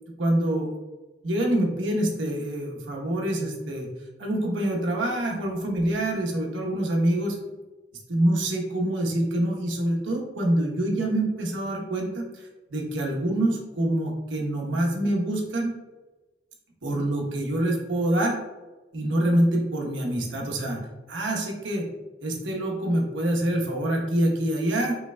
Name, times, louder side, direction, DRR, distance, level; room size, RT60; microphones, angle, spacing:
voice 1, 0.2-0.7 1.2-3.9 4.2-7.4 8.1-15.7 16.8-18.4 18.9-20.8 21.1-21.8 22.2-25.0, right 1 dB, 85° right, 0 dB, 1.0 m, -26 dB
5.8 x 3.3 x 2.2 m, 1.2 s
head